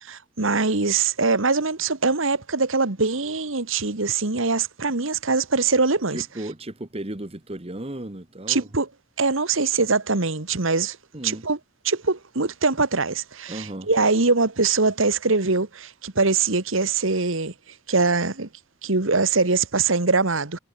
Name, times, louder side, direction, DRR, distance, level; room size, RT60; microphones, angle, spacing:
voice 1, 0.0-6.2 8.5-8.9 9.2-11.0 11.2-11.6 11.8-17.5 17.9-18.5 18.8-20.6, right 4 dB, 70° right, 1.7 m, -22 dB
voice 2, 6.1-8.7 11.1-11.5 13.5-13.9, right 1 dB, 30° right, 1.4 m, -35 dB
head